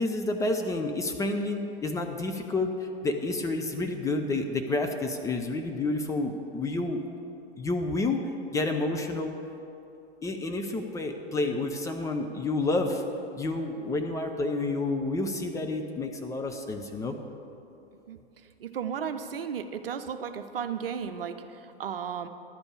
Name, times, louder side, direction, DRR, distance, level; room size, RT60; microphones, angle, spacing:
voice 1, 0.0-2.7 3.0-7.0 7.6-9.4 10.2-13.0 13.4-17.2, left 2 dB, 10° left, 4 dB, 0.5 m, -29 dB
voice 2, 18.6-22.3, right 7 dB, 65° right, 9 dB, 0.7 m, -34 dB
11.5 x 5.2 x 8.5 m, 2.8 s
figure-of-eight pair, 100°, 31 cm